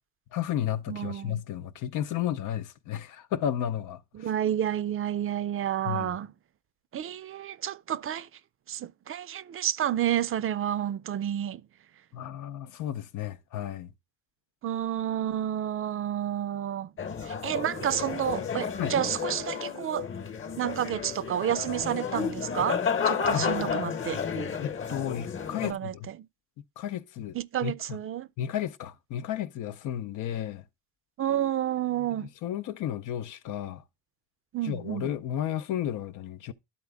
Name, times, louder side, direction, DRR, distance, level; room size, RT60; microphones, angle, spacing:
voice 1, 0.3-4.3 5.8-6.2 12.1-13.9 18.8-18.9 23.3-23.5 24.6-26.1 26.8-28.0 28.4-30.6 32.2-33.8 34.6-36.5, left 10 dB, 85° left, 0.7 m, -33 dB
voice 2, 0.9-1.4 4.1-6.3 6.9-8.3 8.7-11.6 14.6-16.9 17.2-20.1 20.6-24.2 25.6-26.2 27.3-28.3 31.2-32.3 34.5-35.1, right 10 dB, 45° right, 0.5 m, -30 dB
sound 1, 17.0-25.7, left 6 dB, 40° left, 1.0 m, -31 dB
11.5 x 4.0 x 3.4 m
cardioid pair, 90°, 30 cm